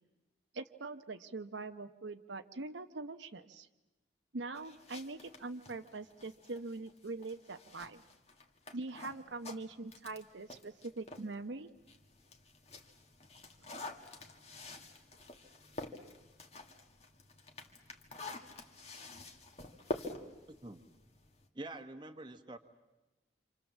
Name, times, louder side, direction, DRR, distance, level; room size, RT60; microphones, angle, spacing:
voice 1, 0.5-3.7 4.3-8.0 8.7-11.7, right 3 dB, 80° right, 8 dB, 0.9 m, -43 dB
sound 1, 4.6-11.3 11.8-21.5, left 1 dB, 35° left, 1.8 m, -48 dB
voice 2, 21.5-22.6, right 2 dB, 25° right, 6 dB, 1.2 m, -46 dB
27.0 x 27.0 x 7.3 m, 1.0 s
head